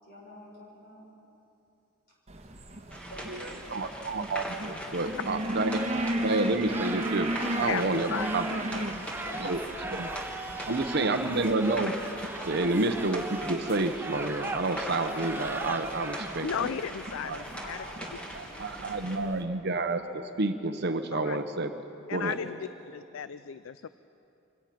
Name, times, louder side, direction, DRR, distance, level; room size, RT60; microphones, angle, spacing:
voice 1, 0.0-1.0 3.1-4.1 5.2-5.4 8.0-8.2 8.9-10.2 10.6-11.2 17.6-19.4 22.1-23.0, left 1 dB, 45° left, -4 dB, 6.3 m, -48 dB
sound 1, 2.3-19.4, right 1 dB, 30° right, 1.4 m, -37 dB
sound 2, 2.9-19.2, equal, 5° left, 2.0 m, -41 dB
voice 2, 3.3-5.9 6.2-8.4 9.4-9.6 9.9-10.1 10.7-12.0 12.4-16.8 17.2-17.4 18.3-22.4, right 2 dB, 50° right, 8 dB, 0.8 m, -29 dB
sound 3, 5.7-16.5, right 2 dB, 10° right, 0.6 m, -39 dB
voice 3, 7.7-8.9 16.4-17.8 21.1-21.4 22.1-22.6 22.9-23.9, left 7 dB, 70° left, 14 dB, 0.4 m, -35 dB
25.0 x 17.5 x 5.9 m, 2.9 s
head